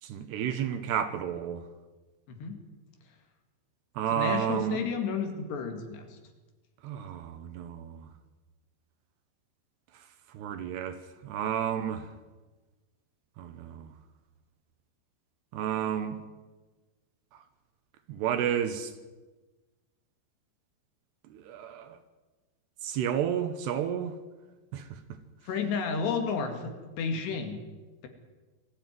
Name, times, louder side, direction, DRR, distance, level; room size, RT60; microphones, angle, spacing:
voice 1, 0.0-1.6 4.0-4.8 6.8-8.0 10.3-11.0 11.2-12.1 13.4-13.9 15.5-16.2 18.1-18.9 21.3-22.0 22.8-24.1 24.7-24.8, right 9 dB, 70° right, 9 dB, 2.9 m, -31 dB
voice 2, 2.3-2.6 4.1-6.2 25.5-27.6, left 5 dB, 70° left, 5 dB, 4.1 m, -32 dB
21.5 x 14.5 x 9.3 m, 1.2 s
omnidirectional pair, 5.4 m